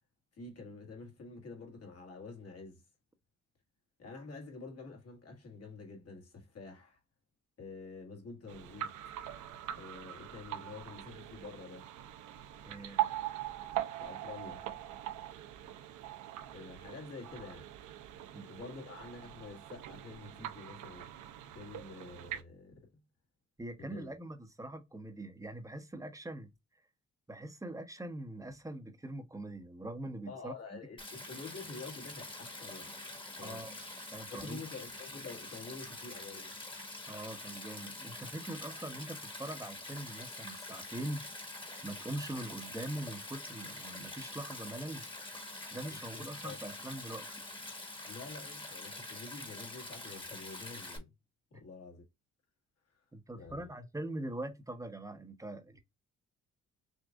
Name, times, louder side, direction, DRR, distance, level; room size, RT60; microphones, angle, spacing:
voice 1, 0.4-2.8 4.0-7.0 7.6-8.9 9.8-11.9 14.0-14.6 16.5-17.7 18.5-21.1 21.5-22.9 23.8-24.1 30.3-32.9 33.4-33.7 34.3-36.5 45.9-46.6 48.1-51.1 51.5-52.0 53.3-53.7, left 4 dB, 55° left, 1.8 m, -48 dB
sound 1, 8.5-22.4, right 13 dB, 85° right, 0.7 m, -42 dB
voice 2, 12.6-13.1 18.3-18.5 23.6-26.5 27.3-30.5 33.4-33.8 34.1-34.6 37.1-41.2 41.8-45.0 45.7-47.3 51.5-51.6 53.1-55.8, right 1 dB, 10° right, 1.0 m, -42 dB
Stream, 31.0-51.0, left 2 dB, 15° left, 1.4 m, -45 dB
6.3 x 2.5 x 2.4 m
cardioid pair, 90°, 30 cm